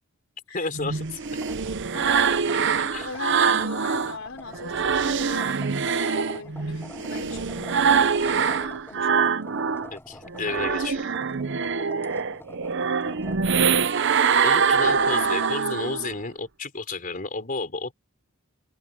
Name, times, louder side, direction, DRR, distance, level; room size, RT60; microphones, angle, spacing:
voice 1, 0.5-1.2 2.9-3.1 4.0-4.2 9.9-11.1 14.4-17.9, left 3 dB, 40° left, 4.1 m, -32 dB
sound 1, 0.7-4.2 4.5-9.9 10.3-16.2, right 6 dB, 60° right, 0.8 m, -24 dB
sound 2, 1.2-15.5, left 1 dB, 10° left, 6.1 m, -46 dB
voice 2, 2.4-5.7 6.0-9.3, left 3 dB, 70° left, 4.2 m, -39 dB
head